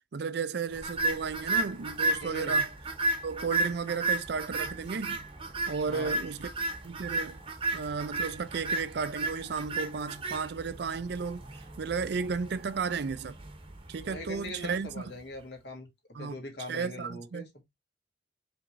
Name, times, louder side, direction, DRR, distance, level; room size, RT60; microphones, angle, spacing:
voice 1, 0.1-2.7 3.2-5.2 5.7-6.5 6.8-7.4 7.7-11.4 11.8-13.4 13.9-15.0 16.1-16.4 16.7-17.5, right 5 dB, 60° right, 0.4 m, -33 dB
sound 1, 0.8-15.1, right 2 dB, 30° right, 0.9 m, -33 dB
voice 2, 2.2-2.6 5.9-6.2 14.0-17.6, left 1 dB, 60° left, 1.9 m, -42 dB
4.9 x 3.5 x 3.0 m
head